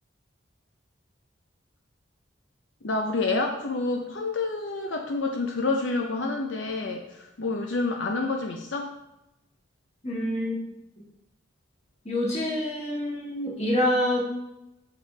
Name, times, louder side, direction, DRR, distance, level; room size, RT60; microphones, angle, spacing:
voice 1, 2.8-8.9, left 3 dB, 75° left, 2 dB, 0.7 m, -28 dB
voice 2, 10.0-10.6 12.1-14.2, left 1 dB, 35° left, -3 dB, 1.8 m, -26 dB
6.8 x 5.9 x 3.3 m, 0.91 s
head